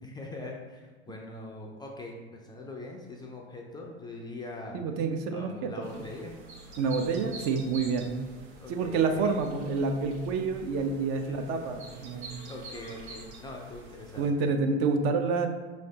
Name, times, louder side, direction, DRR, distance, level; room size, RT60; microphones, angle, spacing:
voice 1, 0.0-4.8 5.3-6.3 8.6-9.3 11.2-11.7 12.5-14.5, left 2 dB, 15° left, 0 dB, 0.4 m, -42 dB
voice 2, 4.7-5.7 6.8-8.1 8.7-12.4 14.2-15.5, right 4 dB, 45° right, 6 dB, 0.5 m, -28 dB
sound 1, 5.8-14.3, right 2 dB, 75° right, 1.0 m, -47 dB
4.8 x 3.2 x 2.8 m, 1.3 s
hypercardioid pair, 85°, 34 cm